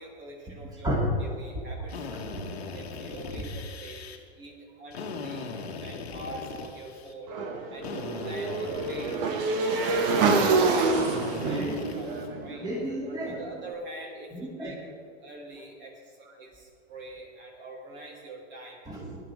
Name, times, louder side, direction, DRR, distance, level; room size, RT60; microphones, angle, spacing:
voice 1, 0.0-2.0 2.7-4.0 4.4-5.5 5.8-7.3 7.7-9.2 9.7-10.9 11.4-12.7 13.3-18.8, right 2 dB, 35° right, -1 dB, 3.1 m, -44 dB
Drill, 1.9-4.2 4.9-7.1 7.8-9.7 10.9-12.3, left 4 dB, 80° left, 1.6 m, -39 dB
voice 2, 2.1-2.4 3.3-3.5 9.8-10.2 10.5-10.7 11.4-11.9 12.6-13.4 14.3-14.7 18.9-19.2, right 1 dB, 10° right, -4 dB, 2.7 m, -33 dB
Motorcycle / Engine, 7.3-13.4, right 3 dB, 55° right, 1.9 m, -27 dB
17.5 x 10.5 x 3.6 m, 2.2 s
hypercardioid pair, 110°, 31 cm